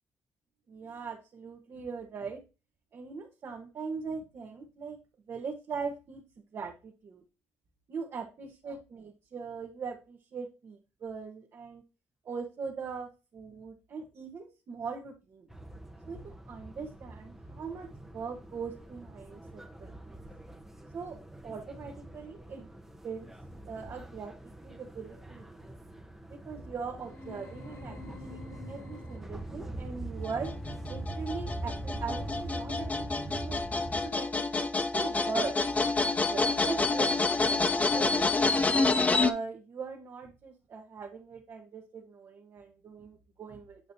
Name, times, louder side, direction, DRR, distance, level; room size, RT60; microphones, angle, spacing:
voice 1, 0.7-2.4 2.9-5.0 5.3-6.2 6.5-7.2 7.9-11.8 12.2-15.5 16.1-20.2 20.9-22.7 23.0-23.3 23.7-24.3 24.6-25.6 26.4-30.5 30.9-35.8 36.3-38.3 38.7-43.8, right 5 dB, 55° right, 0 dB, 1.3 m, -40 dB
sound 1, 15.5-34.1, right 2 dB, 5° right, 1.0 m, -43 dB
sound 2, 27.0-29.6, left 3 dB, 60° left, 3.1 m, -49 dB
sound 3, 30.2-39.3, left 3 dB, 25° left, 0.7 m, -28 dB
8.7 x 5.0 x 2.8 m, 0.29 s
cardioid pair, 85°, 6 cm